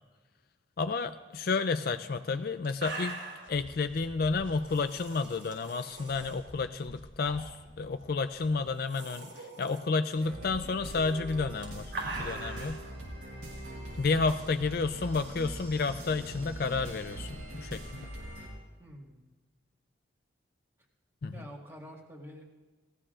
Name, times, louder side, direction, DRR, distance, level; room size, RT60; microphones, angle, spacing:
voice 1, 0.8-12.8 14.0-18.1 21.2-21.3, left 4 dB, 50° left, 10 dB, 0.4 m, -31 dB
sound 1, 1.9-2.0 2.3-2.4 2.6-3.5 4.6-6.3 7.2-7.6 7.9-8.0 8.6-9.8 11.2-12.8 13.9-14.2, right 3 dB, 75° right, 5.2 m, -41 dB
sound 2, 3.4-8.7, left 1 dB, 85° left, 1.1 m, -52 dB
sound 3, 10.1-18.5, right 1 dB, 90° right, 4.4 m, -42 dB
voice 2, 18.8-19.2 21.3-22.4, equal, 15° right, -1 dB, 1.6 m, -47 dB
19.0 x 15.0 x 2.5 m, 1.3 s
head